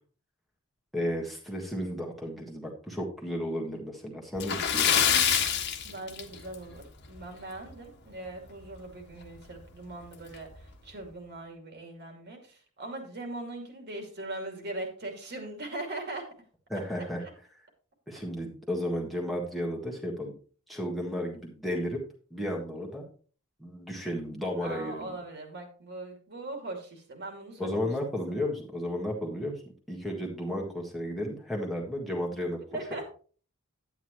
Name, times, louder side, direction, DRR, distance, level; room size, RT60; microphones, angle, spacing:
voice 1, 0.9-5.0 16.7-17.2 18.1-20.3 20.7-22.0 22.3-23.1 23.6-25.2 27.6-29.6 29.9-32.6, equal, ahead, -3 dB, 1.6 m, -33 dB
Splash splatter, 4.4-6.7 7.0-7.2 7.7-7.8 9.2-9.3 9.6-9.7 10.3-10.6, left 8 dB, 50° left, 1.3 m, -25 dB
voice 2, 5.8-16.3 17.0-17.1 18.6-18.7 24.6-27.9 28.3-28.5 32.7-33.1, right 2 dB, 50° right, 3 dB, 2.5 m, -40 dB
10.5 x 9.2 x 3.1 m, 0.41 s
head